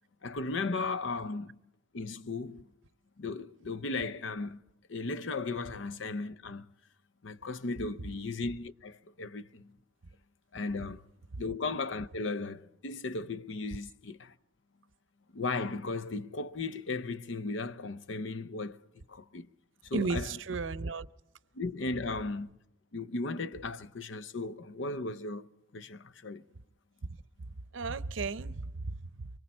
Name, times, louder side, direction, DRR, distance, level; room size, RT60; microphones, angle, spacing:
voice 1, 0.2-1.6 1.9-2.7 3.2-4.6 4.9-6.7 7.2-9.7 10.5-11.1 11.4-14.3 15.3-19.5 19.8-20.4 21.5-22.6 22.9-25.5 25.7-26.4, left 3 dB, 75° left, 0.7 m, -36 dB
voice 2, 19.9-21.1 27.7-29.3, right 4 dB, 75° right, 0.6 m, -34 dB
25.0 x 24.5 x 4.4 m
head